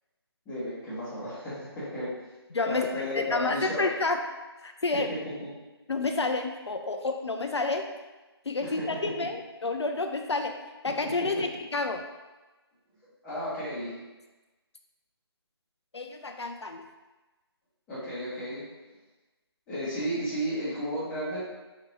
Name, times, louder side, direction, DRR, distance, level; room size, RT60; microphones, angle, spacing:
voice 1, 0.5-2.1 2.6-3.8 4.9-5.5 8.6-9.0 11.0-11.4 13.2-14.0 17.9-18.7 19.7-21.4, equal, 10° left, -10 dB, 0.9 m, -33 dB
voice 2, 2.5-4.2 4.6-5.1 5.9-7.8 8.5-10.5 10.8-12.0 15.9-16.9, left 3 dB, 80° left, 5 dB, 0.4 m, -29 dB
4.1 x 2.8 x 3.1 m, 1.2 s
figure-of-eight pair, 150°, 14 cm